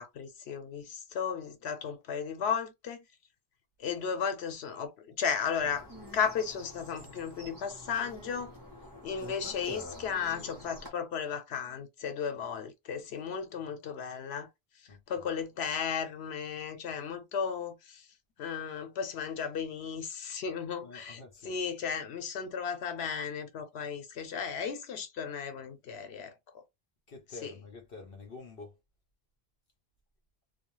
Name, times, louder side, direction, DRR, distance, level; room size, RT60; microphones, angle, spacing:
voice 1, 0.0-3.0 3.8-5.9 6.1-8.6 9.0-14.5 15.1-18.1 18.4-26.6 27.4-27.5, left 7 dB, 90° left, 1.0 m, -35 dB
sound 1, 5.6-10.9, left 1 dB, 20° right, 0.9 m, -47 dB
voice 2, 14.9-15.3 20.8-21.6 27.1-28.8, left 3 dB, 65° left, 0.9 m, -48 dB
2.3 x 2.2 x 3.0 m
omnidirectional pair, 1.0 m